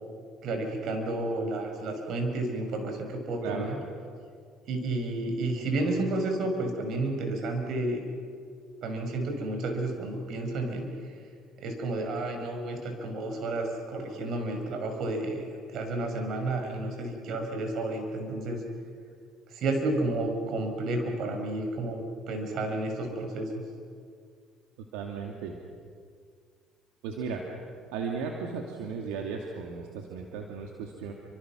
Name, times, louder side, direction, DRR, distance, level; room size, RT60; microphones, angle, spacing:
voice 1, 0.4-3.8 4.7-8.0 8.8-10.9 11.6-18.6 19.5-22.0 22.3-23.6, right 2 dB, 65° right, 4 dB, 6.1 m, -31 dB
voice 2, 24.9-25.6 27.0-27.4 27.9-31.1, right 5 dB, 85° right, 1 dB, 2.4 m, -35 dB
29.0 x 25.5 x 6.2 m, 2.2 s
supercardioid pair, 80°, 0 cm